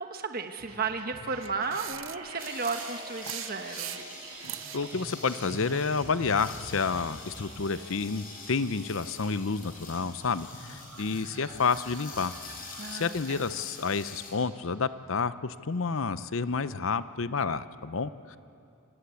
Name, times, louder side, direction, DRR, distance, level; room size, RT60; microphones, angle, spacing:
voice 1, 0.0-4.0 12.8-13.4, right 4 dB, 45° right, 6 dB, 1.2 m, -34 dB
sound 1, 0.6-14.7, right 2 dB, 85° right, 6.9 m, -46 dB
sound 2, 1.4-4.9, right 14 dB, 65° right, 0.6 m, -40 dB
sound 3, 2.4-14.3, left 4 dB, 45° left, 4.4 m, -46 dB
voice 2, 4.7-12.3 12.9-18.4, left 4 dB, 65° left, 14 dB, 0.7 m, -30 dB
26.5 x 19.5 x 8.4 m, 2.6 s
head